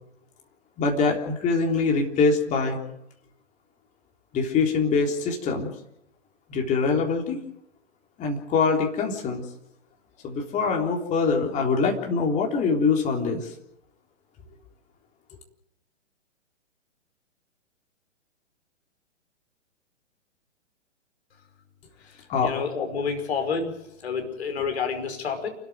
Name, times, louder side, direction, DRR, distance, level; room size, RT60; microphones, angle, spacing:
voice 1, 0.8-2.8 4.3-5.7 6.5-7.4 8.2-9.4 10.2-13.5 22.3-22.5, left 4 dB, 20° left, 1 dB, 3.7 m, -24 dB
voice 2, 22.4-23.7 24.0-25.5, left 5 dB, 60° left, 5 dB, 5.4 m, -28 dB
28.5 x 13.5 x 9.1 m, 0.79 s
figure-of-eight pair, 120°, 37 cm